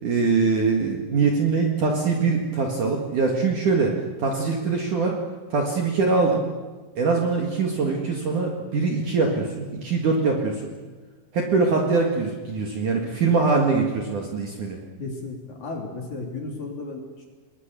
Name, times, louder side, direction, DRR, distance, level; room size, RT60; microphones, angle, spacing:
voice 1, 0.0-5.1 5.5-6.4 7.0-10.7 11.3-14.8, right 4 dB, 50° right, 1 dB, 2.7 m, -23 dB
voice 2, 15.0-17.3, left 3 dB, 40° left, 1 dB, 4.0 m, -34 dB
29.5 x 21.0 x 6.9 m, 1.4 s
omnidirectional pair, 5.7 m